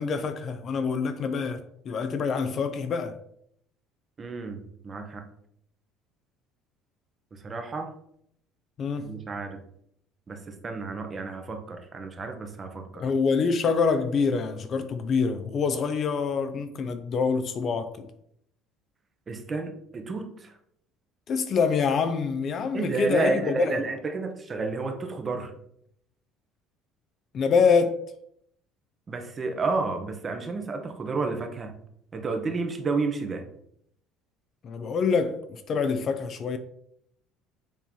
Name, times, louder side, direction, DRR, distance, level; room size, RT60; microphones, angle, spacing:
voice 1, 0.0-3.1 8.8-9.1 12.9-18.1 21.3-23.8 27.3-28.0 34.6-36.6, left 5 dB, 35° left, 0.5 m, -26 dB
voice 2, 4.2-5.2 7.4-7.9 9.0-9.6 10.3-13.1 19.3-20.5 22.7-25.5 29.1-31.7 32.1-33.4, right 3 dB, 25° right, 0.9 m, -31 dB
7.3 x 3.0 x 5.3 m
cardioid pair, 145°, 0 cm